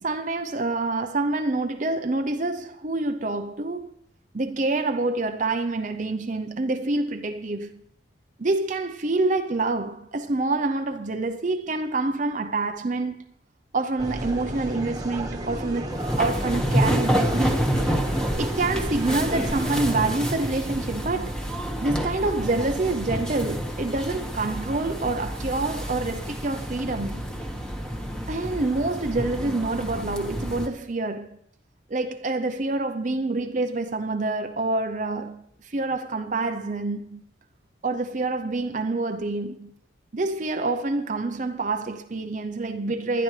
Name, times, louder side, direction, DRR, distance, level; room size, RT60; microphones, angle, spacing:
voice 1, 0.0-3.9 4.3-7.8 8.4-13.3 13.7-17.8 18.4-21.4 21.8-27.3 28.3-31.4 31.9-37.2 37.8-39.7 40.1-43.2, right 2 dB, 40° right, 0.6 m, -27 dB
sound 1, 14.0-20.2, right 1 dB, 20° right, 1.5 m, -33 dB
sound 2, 15.9-30.7, equal, 5° left, 1.4 m, -28 dB
20.0 x 12.0 x 3.3 m
head